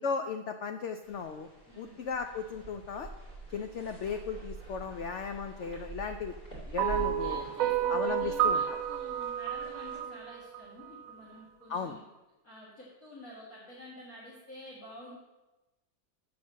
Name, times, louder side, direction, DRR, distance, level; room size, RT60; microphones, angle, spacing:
voice 1, 0.0-1.5 1.8-3.1 3.5-6.3 6.7-7.4 7.9-8.6 11.7-12.0, left 5 dB, 90° left, 6 dB, 0.6 m, -36 dB
sound 1, 1.0-10.0, right 4 dB, 30° left, 3.0 m, -46 dB
voice 2, 1.7-2.0 6.7-12.1 12.4-15.1, left 1 dB, 55° left, -7 dB, 2.3 m, -49 dB
sound 2, 6.8-11.1, right 10 dB, 70° right, 0.9 m, -31 dB
7.7 x 6.2 x 7.2 m, 1.0 s
omnidirectional pair, 1.9 m